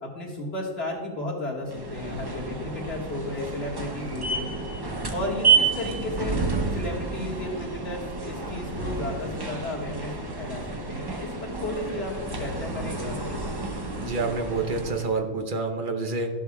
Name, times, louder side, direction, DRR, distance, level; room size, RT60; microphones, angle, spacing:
voice 1, 0.0-4.5 5.1-6.4 6.7-10.6 10.9-13.6, left 1 dB, 50° left, -3 dB, 2.0 m, -34 dB
sound 1, 1.7-15.2, right 4 dB, 25° right, 0.6 m, -30 dB
voice 2, 14.0-16.3, right 3 dB, 45° right, 4 dB, 1.0 m, -28 dB
13.0 x 7.2 x 2.3 m, 1.6 s
omnidirectional pair, 1.3 m